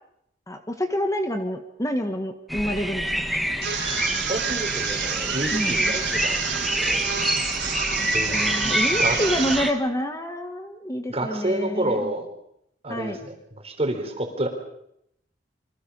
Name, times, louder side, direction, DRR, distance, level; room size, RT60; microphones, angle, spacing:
voice 1, 0.5-3.4 5.5-5.9 7.2-7.3 8.0-12.1 12.9-13.2, equal, 20° left, 6 dB, 1.7 m, -28 dB
sound 1, 2.5-9.7, equal, ahead, 1.6 m, -27 dB
sound 2, 3.6-9.6, right 6 dB, 85° right, 4.5 m, -28 dB
voice 2, 4.3-7.0 8.1-9.2 11.1-12.3 12.8-14.5, right 1 dB, 35° right, 5 dB, 4.0 m, -29 dB
28.0 x 24.5 x 5.5 m, 0.76 s
head